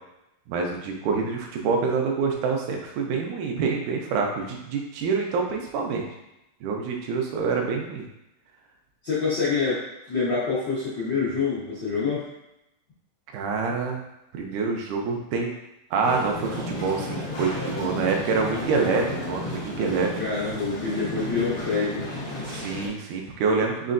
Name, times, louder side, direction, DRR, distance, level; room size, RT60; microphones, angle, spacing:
voice 1, 0.5-6.1 6.6-8.1 13.3-14.0 14.3-15.5 15.9-20.2 22.5-23.9, right 4 dB, 75° right, 1 dB, 2.0 m, -26 dB
voice 2, 9.0-12.2 20.2-22.1, left 4 dB, 85° left, -10 dB, 1.0 m, -26 dB
sound 1, 16.0-22.9, left 1 dB, 65° left, 1.2 m, -33 dB
5.4 x 3.0 x 2.5 m, 0.88 s
omnidirectional pair, 3.8 m